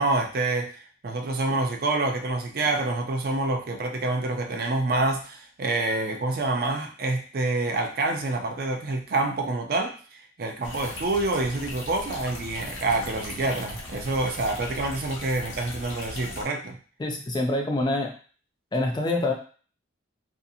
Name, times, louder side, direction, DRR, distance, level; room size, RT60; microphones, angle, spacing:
voice 1, 0.0-16.8, right 2 dB, 50° right, 4 dB, 0.4 m, -27 dB
sound 1, 10.6-16.5, left 1 dB, 80° left, 0.9 m, -38 dB
voice 2, 17.0-18.1 18.7-19.3, left 2 dB, 20° left, 2 dB, 0.3 m, -25 dB
2.6 x 2.4 x 2.7 m, 0.40 s
head